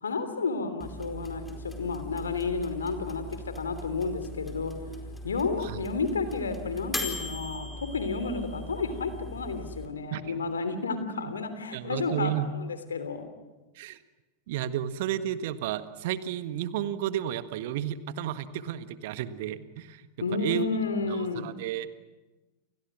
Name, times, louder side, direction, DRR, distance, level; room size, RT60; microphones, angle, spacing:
voice 1, 0.0-4.7 5.2-13.3 20.2-21.5, left 4 dB, 70° left, 10 dB, 3.2 m, -31 dB
sound 1, 0.8-9.9, left 1 dB, 5° left, 4.7 m, -40 dB
voice 2, 11.7-12.5 13.7-14.0 14.5-20.0 20.4-20.7 21.1-21.9, right 11 dB, 50° right, 12 dB, 1.6 m, -32 dB
30.0 x 29.0 x 6.3 m, 1.2 s
figure-of-eight pair, 90°, 0 cm